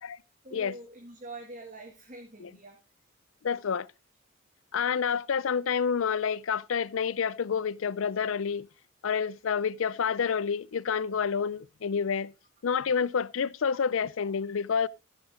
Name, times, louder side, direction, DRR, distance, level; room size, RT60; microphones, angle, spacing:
voice 1, 0.4-2.8, right 2 dB, 40° right, 2.0 m, -45 dB
voice 2, 3.4-3.9 4.7-8.7 9.0-12.3 12.6-14.9, left 6 dB, 75° left, 0.5 m, -28 dB
14.5 x 7.9 x 3.6 m
head